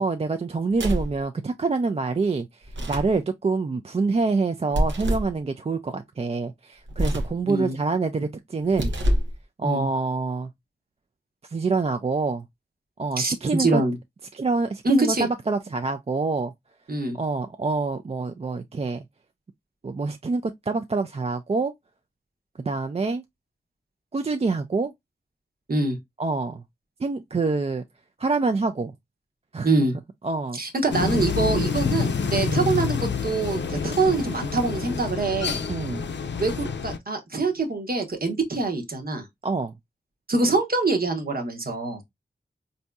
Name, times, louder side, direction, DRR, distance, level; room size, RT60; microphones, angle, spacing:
voice 1, 0.0-8.9 9.6-10.5 11.4-12.4 13.0-13.8 14.3-16.5 17.1-19.1 19.8-21.7 22.6-23.2 24.1-24.9 26.2-26.6 27.0-27.8 28.2-28.9 29.5-29.9 30.2-30.6 32.4-32.7 35.7-36.1 39.4-39.7, right 3 dB, 35° right, 0.4 m, -26 dB
sound 1, 0.7-1.2 2.6-3.2 4.7-5.3 6.9-7.4 8.6-9.4, equal, 90° right, 0.8 m, -25 dB
voice 2, 13.6-14.0 14.8-15.3 16.9-17.2 25.7-26.0 29.6-29.9 30.5-35.6 36.4-39.3 40.3-42.0, right 3 dB, 55° right, 1.0 m, -24 dB
sound 2, 30.9-37.0, left 6 dB, 75° left, 0.5 m, -27 dB
4.1 x 2.6 x 2.2 m
wide cardioid pair, 55°, 19 cm